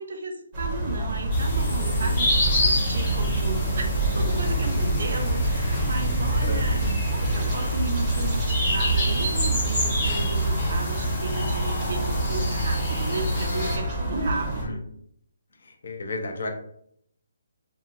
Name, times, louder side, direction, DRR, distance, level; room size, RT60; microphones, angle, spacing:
voice 1, 0.0-14.8, right 2 dB, 60° right, 3 dB, 0.6 m, -34 dB
sound 1, 0.5-14.6, right 2 dB, 20° right, 0.7 m, -27 dB
sound 2, 1.3-13.8, left 1 dB, 30° left, 0.9 m, -28 dB
voice 2, 15.6-16.5, left 2 dB, 60° left, 3 dB, 0.6 m, -32 dB
2.8 x 2.3 x 2.5 m, 0.68 s
hypercardioid pair, 165°, 0 cm